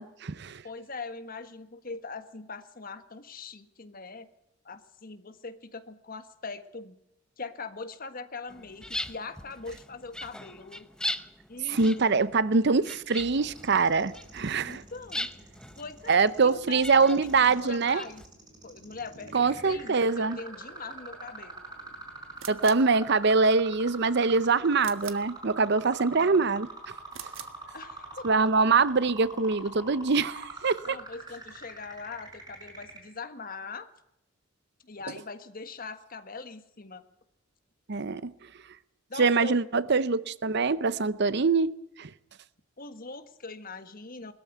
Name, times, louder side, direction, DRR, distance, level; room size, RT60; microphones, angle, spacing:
voice 1, 0.0-0.6 11.7-14.8 16.1-18.0 19.3-20.4 22.5-26.7 27.2-27.3 28.2-31.0 37.9-38.3 39.2-42.1, right 4 dB, 55° right, 0.7 m, -24 dB
voice 2, 0.6-4.3 4.6-7.0 7.4-10.9 11.5-12.2 14.7-15.3 15.7-18.2 18.6-21.6 26.0-26.4 27.7-28.3 30.8-33.9 34.8-37.0 39.1-39.6 42.8-44.3, left 4 dB, 45° left, 1.6 m, -42 dB
sound 1, 8.5-18.3, left 1 dB, 5° left, 0.7 m, -40 dB
sound 2, 13.3-33.0, right 2 dB, 20° right, 5.6 m, -44 dB
sound 3, 22.4-22.9 24.8-25.3 27.1-27.6, right 11 dB, 75° right, 1.5 m, -43 dB
21.0 x 14.0 x 9.2 m
head